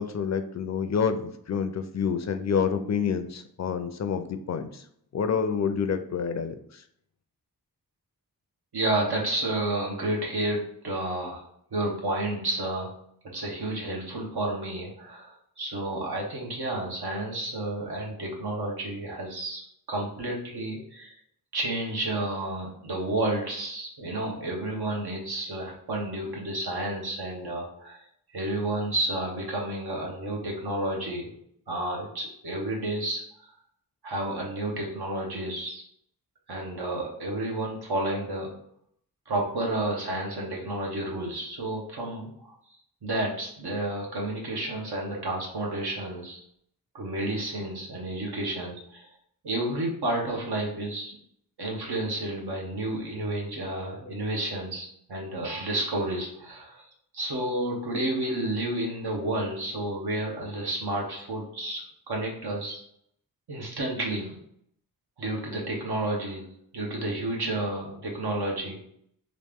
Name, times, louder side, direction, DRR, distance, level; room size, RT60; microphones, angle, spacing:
voice 1, 0.0-4.8 5.1-6.8, left 6 dB, 45° left, 9 dB, 0.4 m, -28 dB
voice 2, 8.7-13.0 13.2-19.6 19.9-21.1 21.5-28.1 28.3-31.3 31.7-33.5 34.0-35.8 36.5-38.5 39.3-42.5 43.0-46.4 46.9-49.1 49.4-51.2 51.6-56.8 57.1-62.8 63.5-64.4 65.2-68.9, right 1 dB, 90° right, -1 dB, 1.0 m, -31 dB
3.1 x 2.5 x 3.5 m, 0.69 s
wide cardioid pair, 70°, 37 cm